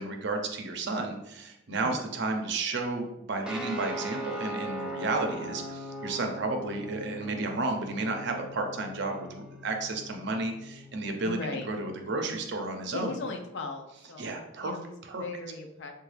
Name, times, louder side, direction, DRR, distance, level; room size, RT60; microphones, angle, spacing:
voice 1, 0.0-11.4 11.7-13.2 14.2-14.7 15.0-15.2, right 3 dB, 60° right, 3 dB, 0.5 m, -32 dB
voice 2, 1.7-2.0 11.2-11.7 12.9-15.9, left 3 dB, 60° left, 4 dB, 0.5 m, -38 dB
sound 1, 3.4-12.4, right 1 dB, 5° right, 0.4 m, -40 dB
3.8 x 2.2 x 3.2 m, 0.87 s
head